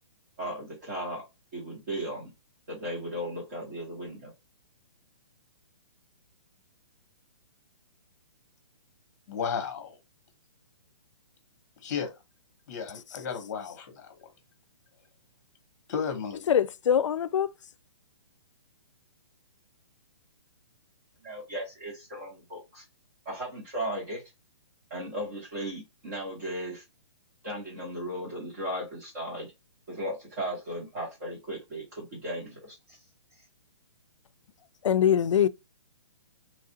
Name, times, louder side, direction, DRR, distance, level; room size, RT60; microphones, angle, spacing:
voice 1, 0.4-1.3 1.5-2.3 2.7-4.3 21.2-22.8 23.2-24.2 24.9-26.8 27.4-29.5 29.9-33.0, right 1 dB, 35° right, 1.2 m, -36 dB
voice 2, 9.3-10.0 11.8-12.1 12.7-14.2 15.9-16.4, left 6 dB, 40° left, 0.9 m, -33 dB
voice 3, 16.5-17.5 34.8-35.5, left 9 dB, 80° left, 0.4 m, -23 dB
3.1 x 2.4 x 2.7 m
hypercardioid pair, 175°, 15 cm